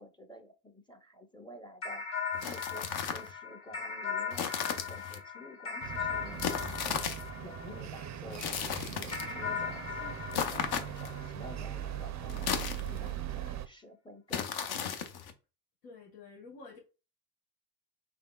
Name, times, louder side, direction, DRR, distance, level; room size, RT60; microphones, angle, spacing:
voice 1, 0.0-2.0 2.4-7.1 7.4-8.4 8.8-14.9, left 1 dB, 10° left, 0.6 m, -51 dB
sound 1, 1.8-8.4 9.1-11.9, left 6 dB, 35° left, 1.9 m, -39 dB
sound 2, 2.3-3.3 4.3-5.2 6.4-7.3 8.3-9.3 10.3-11.2 12.3-13.2 14.3-15.3, left 7 dB, 55° left, 0.7 m, -35 dB
sound 3, 5.8-13.7, right 10 dB, 40° right, 0.4 m, -40 dB
voice 2, 15.8-16.8, left 4 dB, 85° left, 1.0 m, -49 dB
3.5 x 3.3 x 2.2 m
hypercardioid pair, 60°, 47 cm